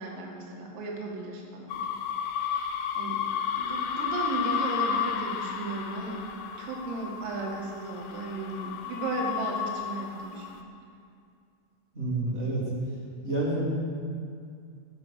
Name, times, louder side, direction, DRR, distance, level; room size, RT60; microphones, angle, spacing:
voice 1, 0.0-1.9 2.4-3.2 3.6-6.2 6.6-10.6, right 3 dB, 85° right, -1 dB, 4.6 m, -35 dB
sound 1, 1.7-10.6, left 7 dB, 80° left, 2.6 m, -32 dB
voice 2, 11.9-12.6 13.2-13.6, right 2 dB, 15° right, -6 dB, 2.5 m, -28 dB
18.0 x 7.8 x 6.3 m, 2.3 s
omnidirectional pair, 5.8 m